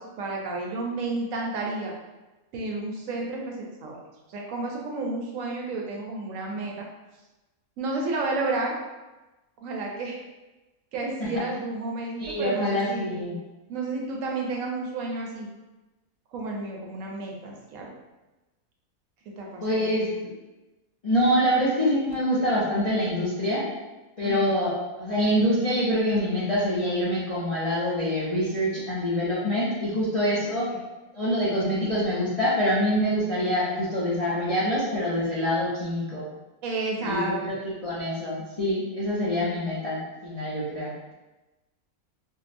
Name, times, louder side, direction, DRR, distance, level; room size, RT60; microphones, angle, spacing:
voice 1, 0.0-1.9 2.5-4.0 4.3-6.9 7.8-8.8 9.6-10.2 10.9-15.5 16.3-17.9 19.4-19.9 24.2-24.5 36.6-37.6, right 3 dB, 70° right, -1 dB, 1.0 m, -31 dB
voice 2, 12.2-13.4 19.6-20.3 21.0-23.7 24.2-30.7 31.1-36.3 37.0-41.1, equal, 45° left, -9 dB, 0.4 m, -25 dB
4.5 x 2.0 x 2.5 m, 1.1 s
omnidirectional pair, 1.5 m